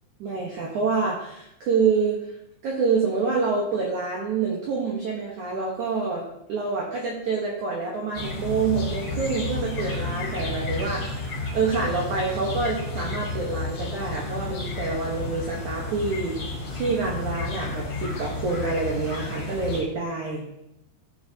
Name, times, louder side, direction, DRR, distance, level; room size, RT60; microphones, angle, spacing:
voice 1, 0.2-2.4 2.6-11.3 11.5-16.4 16.7-20.5, right 4 dB, 65° right, -2 dB, 2.1 m, -27 dB
sound 1, 8.1-19.8, left 3 dB, 40° left, 2.4 m, -31 dB
15.0 x 7.0 x 2.8 m, 0.83 s
omnidirectional pair, 4.8 m